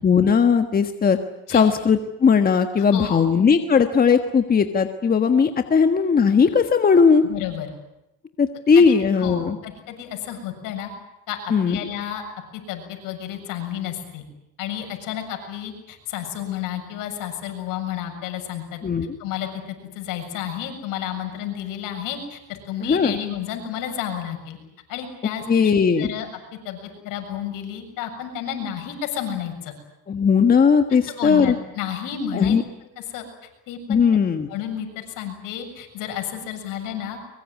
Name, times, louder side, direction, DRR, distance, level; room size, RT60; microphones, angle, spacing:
voice 1, 0.0-1.2 1.5-7.2 8.4-9.6 11.5-11.8 18.8-19.2 22.8-23.2 25.5-26.1 30.1-31.5 32.3-32.6 33.9-34.5, left 6 dB, 25° left, 7 dB, 1.5 m, -18 dB
voice 2, 2.9-3.3 7.2-7.7 8.8-10.9 11.3-12.2 12.5-14.2 14.6-18.8 19.2-24.6 24.9-25.7 26.0-26.3 26.6-26.8 27.0-29.7 31.2-32.6 33.1-33.2 33.7-34.0 34.5-37.2, left 10 dB, 70° left, 5 dB, 7.1 m, -31 dB
23.5 x 23.0 x 9.5 m, 0.89 s
cardioid pair, 115°, 34 cm